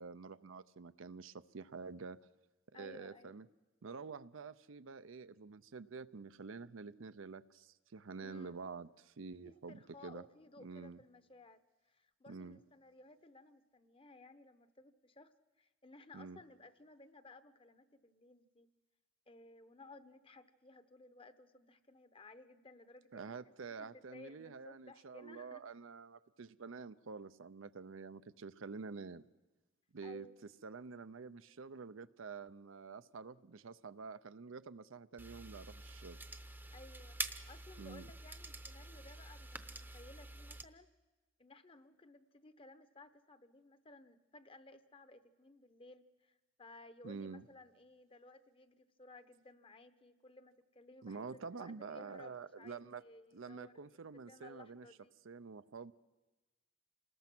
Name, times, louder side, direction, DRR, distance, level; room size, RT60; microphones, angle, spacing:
voice 1, 0.0-2.2 2.7-3.5 3.8-10.2 10.6-11.0 12.3-12.6 16.1-16.4 23.1-29.3 29.9-30.3 30.6-36.2 37.8-38.0 47.0-47.4 51.0-53.0 53.3-54.9 55.2-55.9, right 4 dB, 85° right, 13 dB, 0.6 m, -48 dB
voice 2, 2.7-3.4 8.2-8.6 9.4-18.7 19.3-25.6 30.0-30.5 36.7-40.9 41.4-55.1, left 2 dB, 25° left, 11 dB, 0.9 m, -58 dB
sound 1, 35.2-40.6, right 2 dB, 10° right, 0.7 m, -47 dB
27.5 x 20.0 x 6.1 m, 1.1 s
head